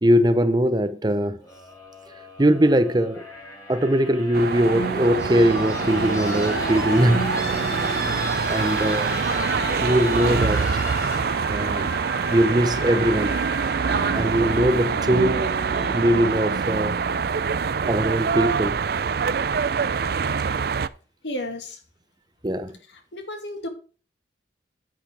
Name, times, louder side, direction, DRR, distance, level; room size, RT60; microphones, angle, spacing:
voice 1, 0.0-1.4 2.4-3.2 3.7-7.3 8.5-9.1 9.8-10.8 11.5-11.9 12.3-13.4 14.1-15.5 15.8-17.0 17.8-18.8 22.4-22.7, equal, 25° right, 0.7 m, -21 dB
sound 1, 1.4-15.4 16.6-16.7, left 1 dB, 20° left, 2.6 m, -34 dB
sound 2, 4.3-20.9, right 5 dB, 60° right, 0.4 m, -25 dB
sound 3, 4.6-16.4, right 2 dB, 70° left, 4.1 m, -35 dB
voice 2, 21.2-21.8 22.9-23.7, left 1 dB, 85° left, 2.1 m, -33 dB
10.0 x 8.0 x 3.3 m
head